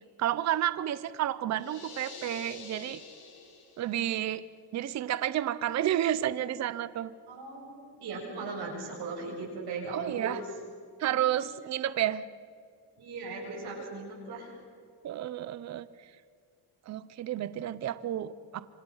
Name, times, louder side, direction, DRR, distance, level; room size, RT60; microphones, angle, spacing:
voice 1, 0.2-3.0 3.8-4.4 4.7-7.1 9.9-10.4 11.0-12.3 15.0-15.9 16.9-18.6, right 12 dB, 40° right, 15 dB, 0.7 m, -31 dB
sound 1, 1.5-4.1, left 4 dB, 55° left, 4.9 m, -47 dB
voice 2, 7.3-10.4 11.0-11.3 13.0-14.6, right 3 dB, 60° right, -3 dB, 7.8 m, -38 dB
27.0 x 25.0 x 5.7 m, 2.1 s
cardioid pair, 160°, 43 cm